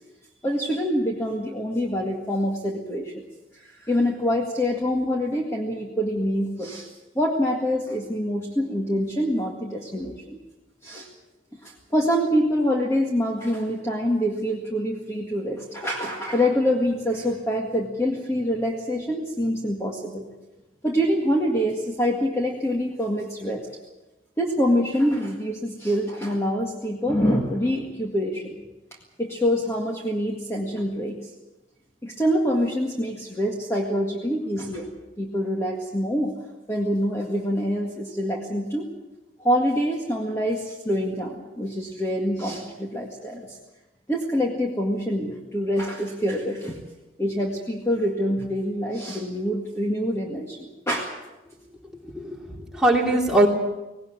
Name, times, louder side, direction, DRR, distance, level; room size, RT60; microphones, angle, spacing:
voice 1, 0.4-3.3 3.5-6.9 7.2-10.4 10.8-11.1 11.6-20.2 20.8-23.6 24.4-28.6 29.2-31.3 32.0-34.9 35.2-36.3 36.7-38.9 39.4-43.6 44.1-46.8 47.2-51.1, equal, 15° left, -1 dB, 1.9 m, -25 dB
voice 2, 52.0-53.5, right 1 dB, 5° right, -2 dB, 3.0 m, -21 dB
19.0 x 18.5 x 8.9 m, 1.1 s
head